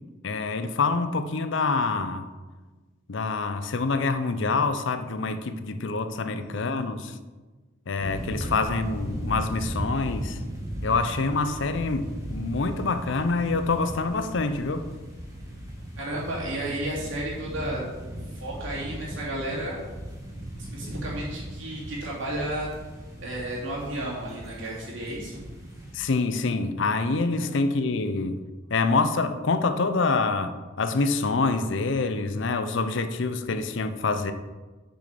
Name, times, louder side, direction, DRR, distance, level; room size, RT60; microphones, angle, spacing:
voice 1, 0.2-2.3 3.1-7.2 7.9-10.4 10.8-14.9 25.9-28.4 28.7-34.3, left 3 dB, 65° left, 0.6 m, -26 dB
voice 2, 6.3-6.9 16.0-17.9 18.3-19.9 20.6-22.7 23.2-25.4 27.5-27.6, right 1 dB, 70° right, 2.9 m, -33 dB
sound 1, 8.0-26.0, equal, 15° right, 1.4 m, -37 dB
6.4 x 6.3 x 5.1 m
head